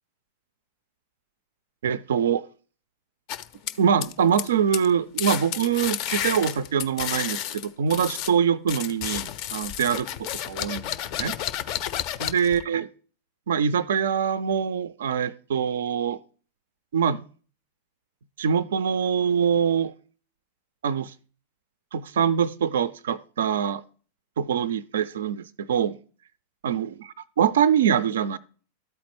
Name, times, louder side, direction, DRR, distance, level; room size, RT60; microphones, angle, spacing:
voice 1, 1.8-2.4 3.8-10.1 10.4-11.3 12.2-12.9 13.5-16.2 16.9-17.2 18.4-19.9 20.8-21.1 21.9-23.8 24.4-26.0 26.6-28.4, right 7 dB, 60° right, 0.3 m, -24 dB
sound 1, 3.3-4.5 4.7-4.9 5.2-8.3 8.7-12.6, left 10 dB, 45° left, 0.4 m, -31 dB
13.0 x 4.3 x 3.0 m
figure-of-eight pair, 90°, 0 cm